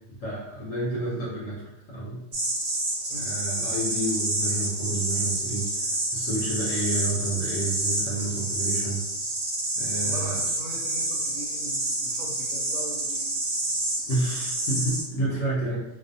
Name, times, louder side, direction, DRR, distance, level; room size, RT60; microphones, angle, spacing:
voice 1, 0.2-2.2 3.1-5.7 6.1-9.0 9.8-10.4 14.1-15.8, right 1 dB, 70° left, -4 dB, 0.9 m, -30 dB
sound 1, 2.3-15.0, right 2 dB, 45° right, 0.6 m, -28 dB
voice 2, 10.0-13.3, right 1 dB, 70° right, -3 dB, 1.1 m, -40 dB
2.5 x 2.1 x 2.6 m, 0.89 s
omnidirectional pair, 1.5 m